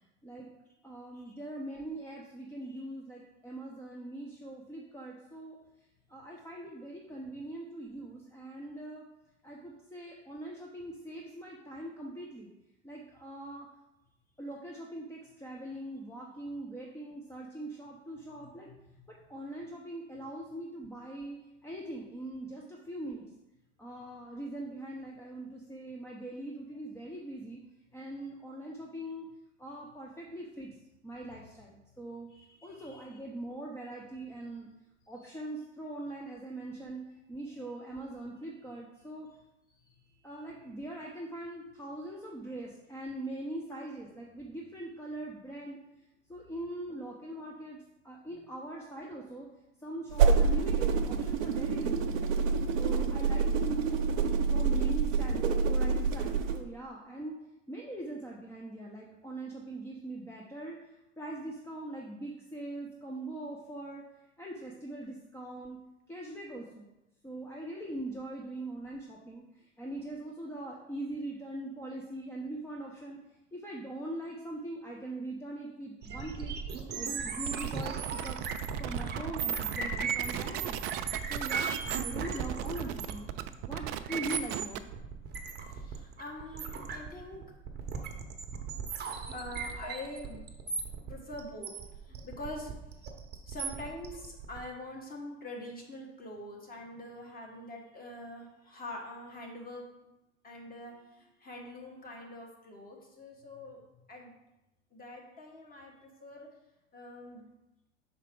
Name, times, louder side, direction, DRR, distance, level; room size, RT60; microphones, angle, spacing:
voice 1, 0.8-5.6 6.1-9.0 9.4-12.5 12.8-13.7 14.4-18.7 19.1-23.3 23.8-27.6 27.9-29.3 29.6-30.7 31.0-32.3 32.6-34.7 35.1-37.0 37.3-39.3 40.2-45.8 46.3-49.5 49.8-52.2 52.8-54.2 54.5-57.4 57.7-60.8 61.2-64.0 64.4-65.8 66.1-66.9 67.2-73.2 73.5-76.5 76.9-78.4 78.8-80.8 81.3-83.3 83.7-84.9, right 1 dB, 5° left, -2 dB, 0.7 m, -41 dB
voice 2, 2.5-2.8 18.3-18.8 32.3-33.2 35.2-35.3 39.8-40.7 48.3-48.4 78.8-79.2 85.7-87.4 89.3-90.4 90.9-92.7 93.5-100.1 100.4-104.3 104.9-106.5 106.9-107.4, left 1 dB, 25° left, 0 dB, 1.5 m, -45 dB
sound 1, 50.1-56.6, right 5 dB, 85° right, 0.7 m, -27 dB
sound 2, 76.0-94.6, right 5 dB, 25° right, 0.9 m, -37 dB
sound 3, 77.4-85.0, right 13 dB, 50° right, 0.4 m, -37 dB
5.7 x 4.5 x 3.8 m, 0.94 s
hypercardioid pair, 95°, 38 cm